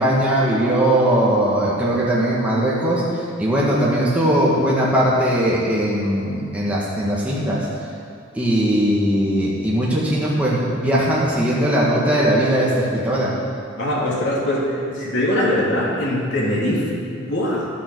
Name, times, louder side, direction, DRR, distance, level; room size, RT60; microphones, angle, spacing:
voice 1, 0.0-3.0 3.4-7.7 8.4-13.4, right 1 dB, 5° right, -7 dB, 1.7 m, -19 dB
voice 2, 13.8-17.7, left 1 dB, 60° left, -5 dB, 2.9 m, -22 dB
12.0 x 7.6 x 6.3 m, 2.3 s
head